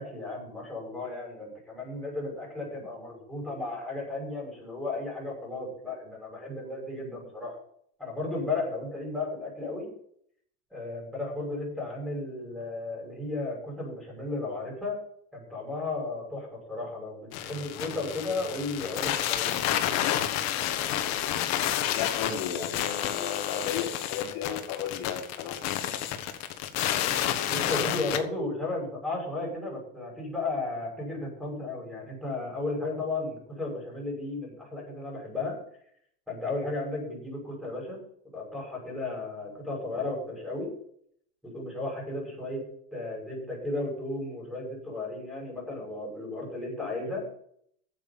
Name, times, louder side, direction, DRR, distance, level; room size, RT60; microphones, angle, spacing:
voice 1, 0.0-7.6 8.0-9.9 10.7-15.0 15.3-19.6 27.5-35.6 36.3-38.0 38.3-40.7 41.4-47.3, left 2 dB, ahead, -2 dB, 6.4 m, -34 dB
sound 1, 17.3-28.2, left 11 dB, 55° left, 1.4 m, -30 dB
voice 2, 21.9-25.6, left 8 dB, 75° left, -1 dB, 3.1 m, -34 dB
9.3 x 7.6 x 8.8 m, 0.67 s
cardioid pair, 150°, 32 cm